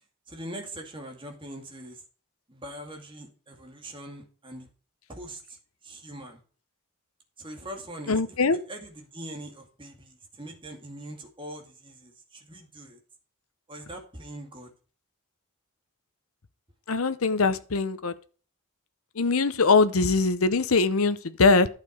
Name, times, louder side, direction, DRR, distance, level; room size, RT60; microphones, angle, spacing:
voice 1, 0.3-2.0 2.5-4.7 5.1-6.4 7.4-8.2 8.5-13.0 13.7-14.7, right 1 dB, 25° right, 2.4 m, -42 dB
voice 2, 8.1-8.6 16.9-18.1 19.2-21.7, left 4 dB, 80° left, 0.8 m, -22 dB
11.5 x 6.8 x 5.3 m
head